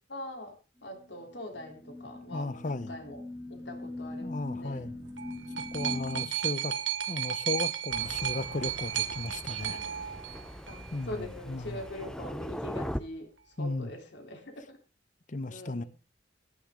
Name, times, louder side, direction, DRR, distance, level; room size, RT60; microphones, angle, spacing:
voice 1, 0.1-0.6 0.8-3.2 3.5-4.9 5.8-6.2 9.6-9.9 10.7-14.8 15.4-15.9, left 1 dB, 65° left, 3.6 m, -43 dB
sound 1, 1.0-6.3, left 2 dB, 15° right, 2.9 m, -41 dB
voice 2, 2.3-2.9 4.2-4.9 5.7-6.7 7.1-10.0 10.9-11.8 13.6-13.9 15.3-15.8, left 2 dB, 40° left, 0.8 m, -35 dB
sound 2, 4.9-10.9 11.8-11.9, right 10 dB, 80° right, 1.4 m, -34 dB
Thunder, 7.9-13.0, equal, 5° left, 0.5 m, -41 dB
16.5 x 10.5 x 3.8 m
head